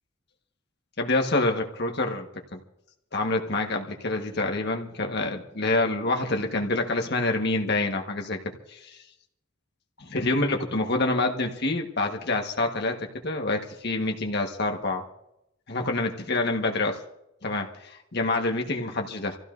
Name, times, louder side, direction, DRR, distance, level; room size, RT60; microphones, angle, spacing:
voice 1, 1.0-2.6 3.1-8.4 8.8-8.9 10.0-13.0 13.2-15.0 15.7-17.0 17.4-19.4, left 2 dB, 50° left, 3 dB, 1.4 m, -27 dB
27.5 x 15.5 x 2.6 m, 0.85 s
head